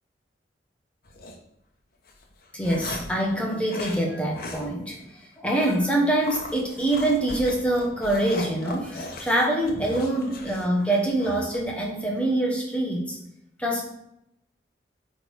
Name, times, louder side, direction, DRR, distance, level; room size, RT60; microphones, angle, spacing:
sound 1, 1.1-1.4 2.1-3.2 3.7-4.0 4.3-4.7 4.9-5.0 5.5-5.8 6.2-11.6, left 2 dB, 50° left, 0.9 m, -38 dB
voice 1, 2.5-13.2 13.6-13.8, right 1 dB, 5° left, -1 dB, 1.0 m, -25 dB
8.6 x 3.4 x 4.7 m, 0.80 s
head